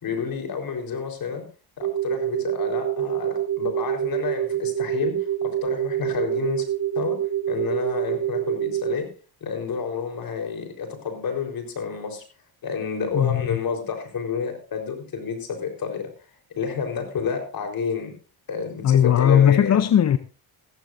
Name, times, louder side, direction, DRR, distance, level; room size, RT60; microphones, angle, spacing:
voice 1, 0.0-1.4 1.8-6.7 7.0-7.2 7.5-9.1 9.4-12.2 12.6-16.1 16.6-18.1 18.5-19.8, left 6 dB, 55° left, 4.1 m, -29 dB
sound 1, 1.8-9.0, right 11 dB, 55° right, 1.0 m, -26 dB
voice 2, 13.1-13.5 18.8-20.2, left 9 dB, 40° left, 0.7 m, -17 dB
15.5 x 14.5 x 2.6 m
cardioid pair, 85°, 41 cm